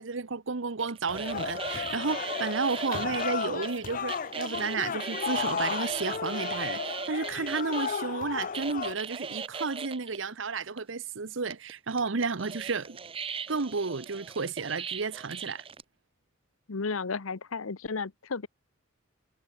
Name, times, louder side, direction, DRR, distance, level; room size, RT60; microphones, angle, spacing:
voice 1, 0.0-13.0 13.5-15.6, right 4 dB, 65° right, 0.9 m, -32 dB
sound 1, 0.8-7.9 8.5-10.2 10.8-10.9 11.5-15.8, right 5 dB, 25° right, 0.7 m, -38 dB
sound 2, 1.1-8.9, left 6 dB, 40° left, 0.5 m, -34 dB
voice 2, 16.7-18.5, left 4 dB, 85° left, 0.9 m, -33 dB
head